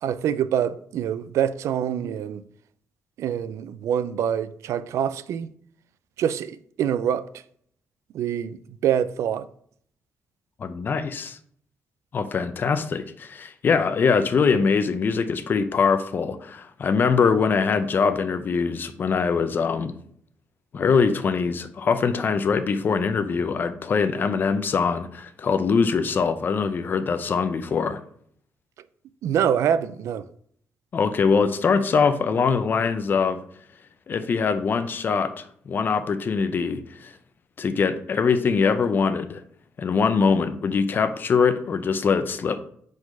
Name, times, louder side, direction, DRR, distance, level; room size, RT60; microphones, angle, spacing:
voice 1, 0.0-2.4 3.2-5.5 6.2-7.2 8.1-9.5 29.2-30.2, right 9 dB, 80° right, 0.4 m, -25 dB
voice 2, 10.6-11.4 12.1-19.9 20.7-28.0 30.9-33.4 34.1-37.1 37.6-39.4 39.8-42.6, left 5 dB, 45° left, 0.5 m, -23 dB
5.0 x 4.0 x 5.3 m
cardioid pair, 130°, 5 cm